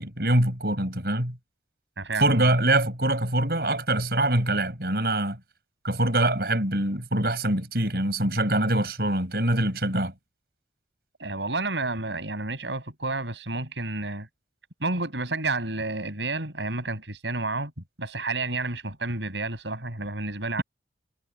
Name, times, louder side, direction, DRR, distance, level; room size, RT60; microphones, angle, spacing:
voice 1, 0.0-1.4 2.2-5.4 5.8-10.1, right 1 dB, 60° right, 7.1 m, -24 dB
voice 2, 2.0-2.5 11.2-14.3 14.8-17.7 18.0-20.6, right 2 dB, 85° right, 7.4 m, -30 dB
head